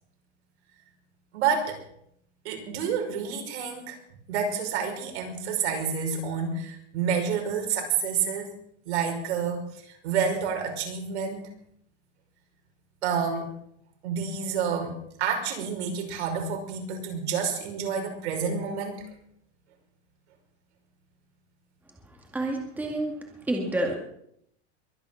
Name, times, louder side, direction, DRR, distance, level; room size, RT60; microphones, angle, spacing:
voice 1, 1.3-1.8 2.4-4.0 4.3-8.5 8.9-11.4 13.0-13.5 14.0-19.0, right 6 dB, 70° right, 3 dB, 5.6 m, -29 dB
voice 2, 22.3-23.1 23.5-24.0, right 1 dB, 5° right, 1 dB, 2.2 m, -28 dB
23.0 x 9.8 x 5.9 m, 0.71 s
supercardioid pair, 165°, 35 cm